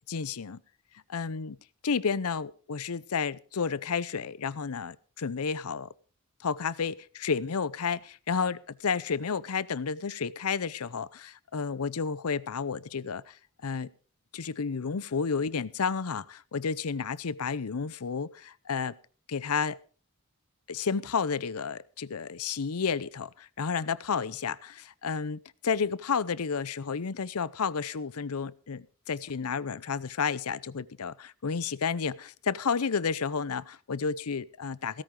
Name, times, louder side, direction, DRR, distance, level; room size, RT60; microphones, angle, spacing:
voice 1, 0.1-0.6 1.1-1.6 1.8-5.9 6.4-13.3 13.6-13.9 14.3-18.9 19.3-19.8 20.7-35.0, left 5 dB, 85° left, 0.7 m, -31 dB
16.5 x 13.5 x 3.8 m
head